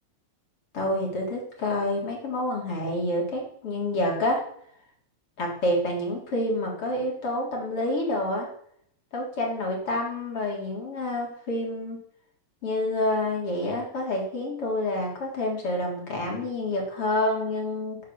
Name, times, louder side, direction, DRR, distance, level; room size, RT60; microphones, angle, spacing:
voice 1, 0.7-4.4 5.4-8.5 9.1-12.0 12.6-18.0, left 1 dB, 50° left, -1 dB, 4.7 m, -28 dB
13.0 x 10.5 x 7.1 m, 0.67 s
omnidirectional pair, 3.3 m